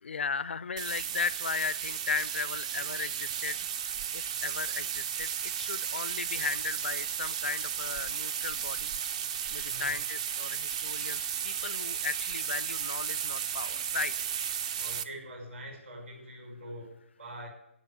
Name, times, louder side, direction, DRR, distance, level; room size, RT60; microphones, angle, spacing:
voice 1, 0.0-3.6 3.9-8.9 9.5-14.1, left 5 dB, 60° left, 19 dB, 0.4 m, -36 dB
sound 1, 0.8-15.0, right 8 dB, 30° right, 0.5 m, -34 dB
voice 2, 14.8-17.5, equal, 65° right, 1 dB, 5.7 m, -44 dB
9.2 x 9.0 x 8.2 m, 0.77 s
figure-of-eight pair, 140°, 7 cm